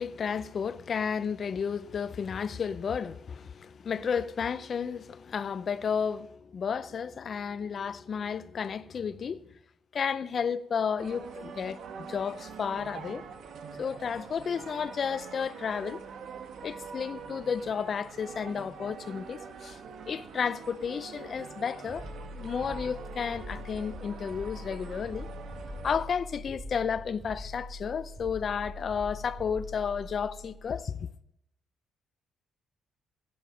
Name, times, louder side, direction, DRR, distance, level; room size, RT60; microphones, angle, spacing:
voice 1, 0.0-9.4 9.9-13.2 13.8-16.0 16.6-19.8 20.1-22.0 22.4-25.3 25.8-31.1, left 6 dB, 50° left, 0.6 m, -32 dB
sound 1, 11.0-26.0, right 6 dB, 70° right, 1.4 m, -44 dB
sound 2, 21.9-31.0, left 1 dB, 30° right, 6.3 m, -43 dB
15.5 x 11.0 x 5.1 m
cardioid pair, 90°, 0 cm